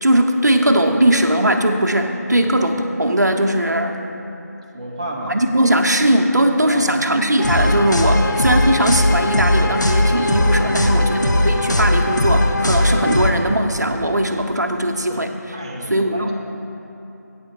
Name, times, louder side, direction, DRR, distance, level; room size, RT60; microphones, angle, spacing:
voice 1, 0.0-4.0 5.3-15.3 15.9-16.3, right 1 dB, 75° right, 4 dB, 0.8 m, -19 dB
voice 2, 4.7-5.4 6.6-6.9 8.1-8.2 10.7-11.0 11.2-11.4 15.1-15.2 15.5-16.3, right 1 dB, 20° right, -2 dB, 0.6 m, -32 dB
sound 1, 7.4-13.3, left 1 dB, 85° left, 0.8 m, -18 dB
8.8 x 4.6 x 6.9 m, 2.9 s
figure-of-eight pair, 165°, 10 cm